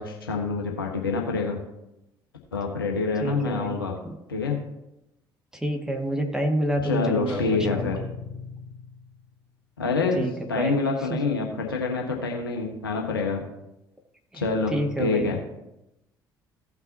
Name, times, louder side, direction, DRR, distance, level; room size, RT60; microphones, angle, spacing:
voice 1, 0.0-1.6 2.5-4.0 4.3-4.6 6.8-8.0 9.8-10.2 10.5-13.5 14.3-14.7 15.0-15.4, left 4 dB, 85° left, 1 dB, 1.2 m, -26 dB
voice 2, 3.2-3.8 4.0-4.1 5.5-7.9 10.2-10.7 14.3-14.4 14.7-15.4, right 1 dB, 5° right, 2 dB, 1.8 m, -28 dB
sound 1, 7.3-9.3, left 4 dB, 50° left, 2.6 m, -36 dB
16.0 x 5.9 x 2.8 m, 0.88 s
figure-of-eight pair, 50°, 12 cm